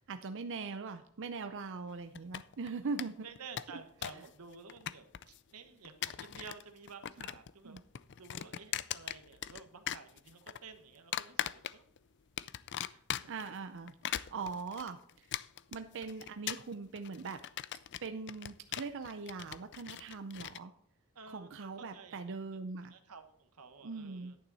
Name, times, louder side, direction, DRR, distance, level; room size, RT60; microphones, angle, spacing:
voice 1, 0.1-3.2 4.1-4.2 7.2-7.3 7.6-7.8 13.3-15.3 15.7-17.4 18.0-20.7 21.3-22.9 23.8-24.3, right 4 dB, 55° right, 9 dB, 0.5 m, -41 dB
sound 1, 2.1-2.7 3.0-3.1 3.4-4.3 4.5-5.4 5.8-6.6 6.9-7.5 7.8-9.6 9.9-10.6 11.1-12.0 12.4-13.5 13.9-20.6, left 11 dB, 50° left, 0.4 m, -39 dB
voice 2, 3.2-7.8 8.2-11.8 12.8-13.5 21.1-22.4 22.9-24.4, right 5 dB, 85° right, 8 dB, 1.3 m, -52 dB
10.5 x 9.0 x 4.1 m, 0.71 s
head